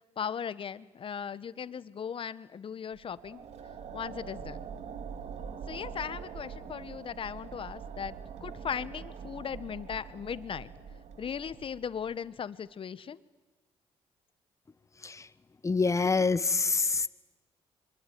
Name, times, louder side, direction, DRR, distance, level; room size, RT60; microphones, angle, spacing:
voice 1, 0.2-3.4 3.9-4.6 5.7-8.2 8.4-10.7 11.2-13.2, left 7 dB, 50° left, 16 dB, 1.4 m, -38 dB
sound 1, 2.9-12.2, right 6 dB, 70° right, 2.1 m, -44 dB
voice 2, 15.6-17.1, left 4 dB, 25° left, 15 dB, 1.3 m, -26 dB
26.0 x 23.0 x 9.5 m, 1.2 s
supercardioid pair, 65°, 12 cm